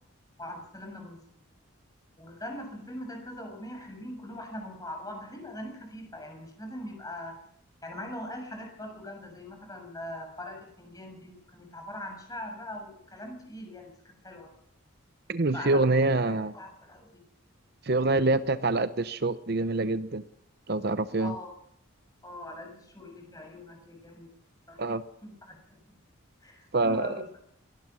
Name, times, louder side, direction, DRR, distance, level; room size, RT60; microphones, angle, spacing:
voice 1, 0.4-1.2 2.2-7.4 7.8-14.5 15.5-16.0 16.5-17.2 21.2-21.5 22.2-24.3 24.7-24.8 25.2-25.6 26.4-27.3, left 1 dB, 15° left, 2 dB, 7.1 m, -41 dB
voice 2, 15.3-16.5 17.8-20.2 20.7-21.4 24.8-25.0 26.7-27.2, right 2 dB, 50° right, 12 dB, 0.7 m, -26 dB
22.5 x 18.5 x 6.2 m, 0.69 s
head